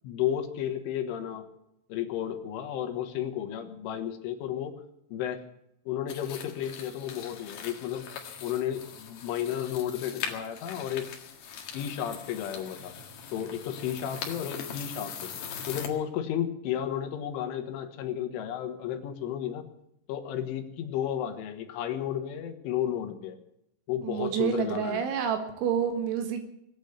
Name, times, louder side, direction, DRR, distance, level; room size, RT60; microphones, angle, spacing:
voice 1, 0.0-1.5 1.9-4.7 5.1-5.4 5.9-8.1 8.4-11.1 11.7-12.9 13.3-15.1 15.7-19.7 20.1-23.4 23.9-25.0, left 10 dB, 80° left, 6 dB, 3.9 m, -33 dB
sound 1, 6.1-15.9, left 7 dB, 60° left, 3.1 m, -41 dB
voice 2, 24.0-26.5, right 8 dB, 75° right, 6 dB, 3.8 m, -28 dB
20.0 x 8.8 x 8.1 m, 0.78 s
omnidirectional pair, 5.6 m